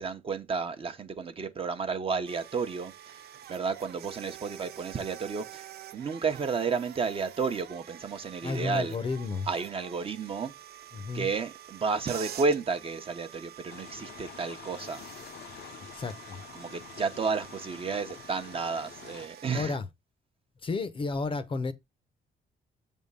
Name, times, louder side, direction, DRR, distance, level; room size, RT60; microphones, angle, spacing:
voice 1, 0.0-3.2 3.5-5.7 5.9-9.0 9.5-10.5 11.1-15.0 16.5-19.8, right 5 dB, 30° right, 0.9 m, -32 dB
sound 1, 2.3-19.6, right 11 dB, 70° right, 0.6 m, -47 dB
voice 2, 8.4-9.5 10.9-11.3 15.9-16.4 19.5-19.9 20.6-21.7, left 4 dB, 30° left, 0.7 m, -32 dB
sound 2, 13.7-19.3, left 10 dB, 75° left, 0.7 m, -48 dB
7.3 x 3.6 x 5.4 m
cardioid pair, 155°, 17 cm